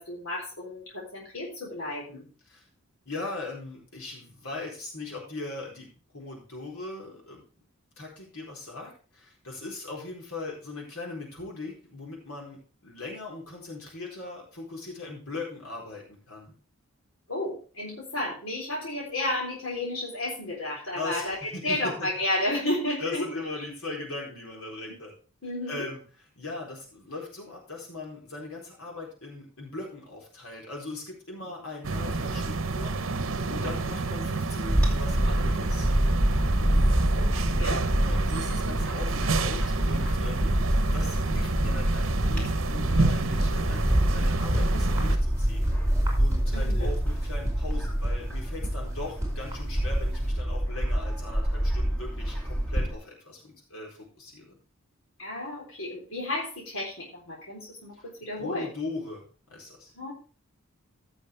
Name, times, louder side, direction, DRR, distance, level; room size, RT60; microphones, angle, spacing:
voice 1, 0.0-2.3 17.3-23.4 25.4-25.9 36.6-37.8 46.5-46.9 55.2-58.7 59.9-60.1, left 1 dB, 70° left, -4 dB, 3.9 m, -32 dB
voice 2, 3.1-7.4 8.0-16.5 20.9-22.1 23.0-25.1 25.7-26.0 26.4-33.0 33.5-35.9 37.5-45.7 46.2-54.6 57.9-58.1 58.4-59.9, left 3 dB, 85° left, -1 dB, 4.3 m, -39 dB
sound 1, 31.8-45.2, right 3 dB, 65° right, 0.9 m, -29 dB
Bird / Wind, 34.7-52.9, equal, 5° left, 2.5 m, -27 dB
sound 2, 39.4-50.3, equal, 15° right, 4.7 m, -34 dB
15.5 x 6.3 x 3.4 m, 0.37 s
head